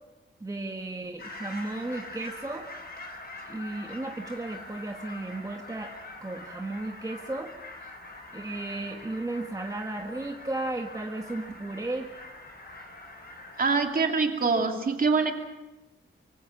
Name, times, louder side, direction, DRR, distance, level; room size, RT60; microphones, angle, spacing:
voice 1, 0.4-2.7 3.5-5.9 6.2-7.5 7.8-7.9 8.3-12.1, right 2 dB, 15° right, 2 dB, 1.5 m, -34 dB
sound 1, 1.2-13.9, left 2 dB, 50° left, 5.1 m, -44 dB
voice 2, 13.6-15.3, right 4 dB, 45° right, 3 dB, 2.9 m, -24 dB
25.0 x 24.0 x 6.1 m, 1.1 s
wide cardioid pair, 170°, 21 cm